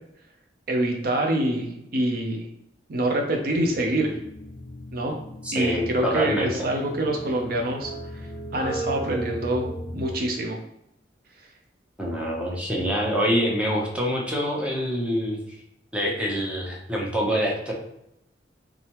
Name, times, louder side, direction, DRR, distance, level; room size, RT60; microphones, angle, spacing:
voice 1, 0.7-2.5 2.9-4.2 4.9-5.2 5.5-10.6, right 1 dB, 55° right, 2 dB, 0.5 m, -26 dB
sound 1, 3.5-10.2, equal, 40° left, 0.9 m, -36 dB
voice 2, 5.4-6.5 12.0-15.4 15.9-17.7, equal, 5° right, -2 dB, 0.8 m, -25 dB
3.5 x 3.2 x 2.9 m, 0.80 s
head